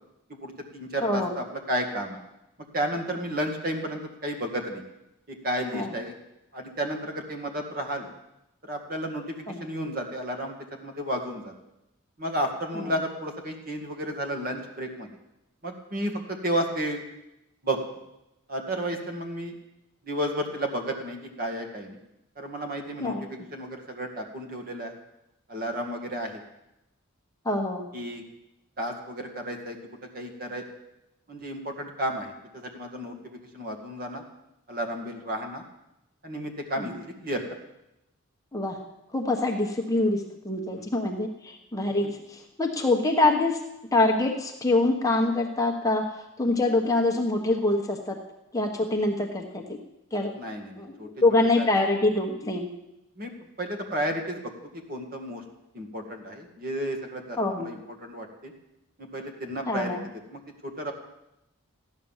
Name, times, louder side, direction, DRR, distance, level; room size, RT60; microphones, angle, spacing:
voice 1, 0.4-2.2 2.7-4.8 5.3-6.1 6.5-8.1 8.6-11.5 12.2-15.1 15.6-17.0 17.6-17.8 18.5-19.6 20.0-22.0 22.4-24.9 25.5-26.4 27.9-28.2 28.8-30.7 31.3-34.2 34.7-35.6 36.2-37.6 40.7-40.9 50.4-51.1 51.6-51.7 53.2-53.3 53.6-55.4 55.7-58.5 59.0-60.0 60.3-60.9, right 1 dB, 45° right, 3 dB, 2.1 m, -32 dB
voice 2, 1.0-1.3 5.7-5.9 9.5-9.7 12.8-12.9 23.0-23.2 27.4-27.9 36.8-37.0 38.5-38.8 39.1-43.6 43.9-48.2 48.5-49.8 50.1-50.3 50.8-52.7 57.4-57.7 59.7-60.0, left 2 dB, 15° left, 1 dB, 1.2 m, -25 dB
14.5 x 11.0 x 7.3 m, 0.90 s
head